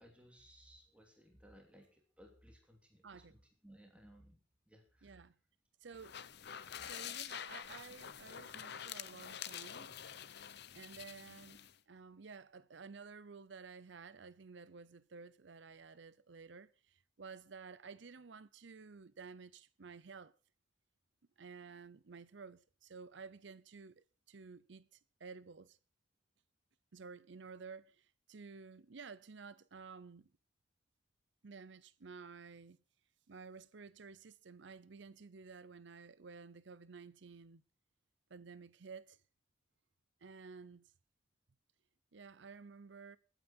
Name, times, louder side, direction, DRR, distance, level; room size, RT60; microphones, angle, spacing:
voice 1, 0.0-5.3, equal, 5° right, 2.8 m, -61 dB
voice 2, 5.0-5.4 5.8-6.2 6.8-9.9 10.7-20.3 21.4-25.8 26.9-30.3 31.4-32.8 33.3-37.6 38.3-39.2 40.2-40.9 42.1-43.2, right 5 dB, 70° right, 0.7 m, -53 dB
sound 1, 5.9-11.7, left 9 dB, 60° left, 0.8 m, -47 dB
22.5 x 9.1 x 4.4 m
head